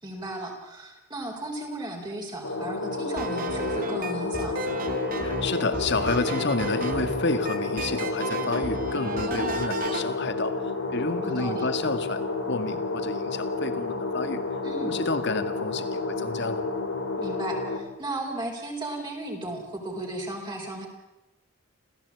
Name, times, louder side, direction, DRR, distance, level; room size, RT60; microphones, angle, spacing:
voice 1, 0.0-4.6 9.3-9.7 11.2-11.7 14.6-15.0 17.2-20.9, right 1 dB, 20° right, -1 dB, 4.1 m, -35 dB
sound 1, 2.4-17.8, left 3 dB, 70° left, 3.6 m, -30 dB
sound 2, 3.2-10.1, right 2 dB, 40° right, 2.5 m, -33 dB
voice 2, 5.2-14.5 14.8-16.7, left 3 dB, 50° left, 10 dB, 2.0 m, -30 dB
27.5 x 16.5 x 8.5 m, 0.99 s
head